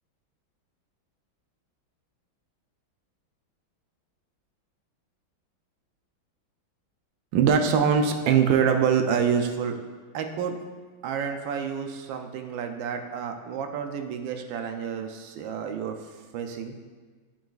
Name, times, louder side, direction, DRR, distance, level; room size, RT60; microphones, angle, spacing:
voice 1, 7.3-9.7 10.1-10.5 11.0-16.0 16.3-16.7, right 7 dB, 75° right, 5 dB, 1.3 m, -26 dB
8.9 x 4.8 x 2.4 m, 1.5 s
omnidirectional pair, 2.2 m